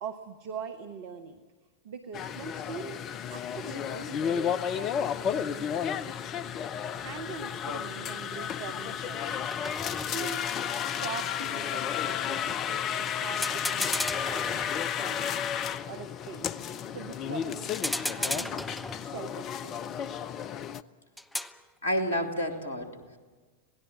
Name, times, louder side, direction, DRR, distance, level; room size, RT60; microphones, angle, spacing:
voice 1, 0.0-1.4 1.8-6.5 6.9-9.5 9.8-14.7 15.0-15.4 15.9-16.6 16.9-17.8 18.2-18.6 19.0-20.0, right 5 dB, 50° right, 10 dB, 1.3 m, -43 dB
sound 1, 2.1-20.8, left 8 dB, 35° left, 0.6 m, -32 dB
sound 2, 6.9-7.2 9.5-10.5 13.1-13.2 13.4-15.2 17.7-19.3 21.2-21.6, left 1 dB, 5° left, 0.9 m, -35 dB
voice 2, 21.8-23.2, equal, 70° left, 6 dB, 2.7 m, -30 dB
26.5 x 18.5 x 7.4 m, 1.4 s
figure-of-eight pair, 90°, 0 cm